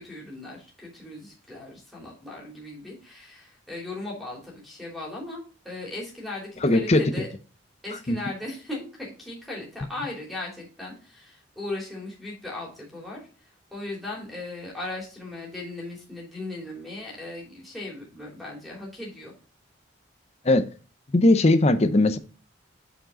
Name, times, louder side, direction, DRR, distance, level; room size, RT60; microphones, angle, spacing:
voice 1, 0.0-7.3 7.8-13.3 13.7-19.3, left 2 dB, ahead, 3.2 m, -37 dB
voice 2, 6.6-7.0 8.1-8.2 20.5-20.6 21.1-22.2, left 2 dB, 35° left, 0.5 m, -19 dB
9.1 x 4.8 x 3.8 m
head